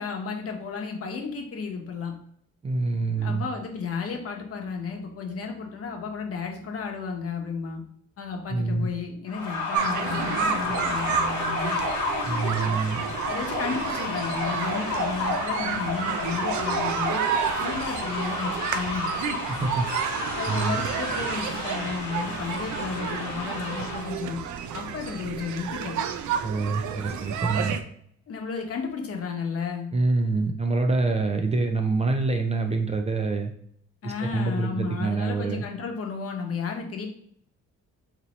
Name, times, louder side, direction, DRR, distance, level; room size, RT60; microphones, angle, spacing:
voice 1, 0.0-2.1 3.1-7.8 8.2-11.8 13.3-17.2 17.6-19.0 20.4-24.4 24.7-26.0 28.3-29.9 34.0-37.1, left 5 dB, 50° left, 2 dB, 0.9 m, -33 dB
voice 2, 2.6-3.4 8.5-8.9 12.2-13.0 19.5-19.9 20.5-20.8 26.4-27.7 29.9-33.5 34.0-35.6, right 3 dB, 20° right, 3 dB, 0.4 m, -26 dB
sound 1, 9.3-24.1, left 2 dB, 80° left, 1.3 m, -31 dB
sound 2, 9.7-27.8, right 8 dB, 75° right, 0.5 m, -31 dB
3.0 x 2.7 x 4.0 m, 0.65 s
cardioid pair, 90°, 30 cm